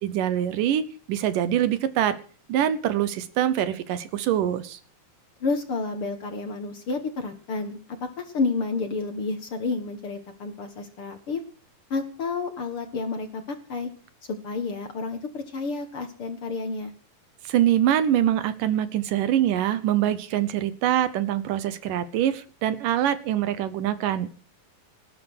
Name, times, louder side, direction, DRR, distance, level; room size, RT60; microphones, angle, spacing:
voice 1, 0.0-2.2 2.5-4.8 17.4-24.4, right 11 dB, 75° right, 14 dB, 2.5 m, -24 dB
voice 2, 5.4-11.4 11.9-13.9 14.4-16.9, left 4 dB, 50° left, 7 dB, 2.0 m, -30 dB
19.0 x 9.9 x 6.3 m, 0.39 s
omnidirectional pair, 4.0 m